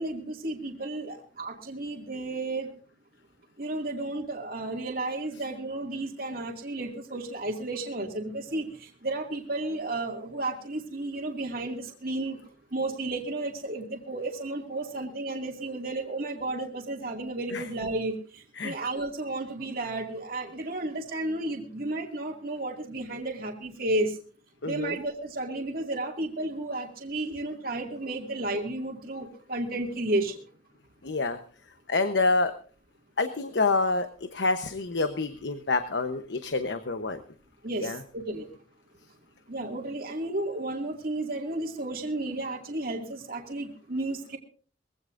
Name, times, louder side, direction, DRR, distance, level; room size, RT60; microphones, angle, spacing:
voice 1, 0.0-2.7 3.6-12.4 12.7-24.2 24.6-30.4 37.6-38.5 39.5-44.4, right 2 dB, 55° right, 0 dB, 2.3 m, -32 dB
voice 2, 24.6-24.9 31.0-31.4 31.9-32.5 33.2-37.2 37.8-38.0, left 3 dB, 80° left, 9 dB, 1.0 m, -27 dB
22.0 x 16.0 x 2.6 m, 0.40 s
head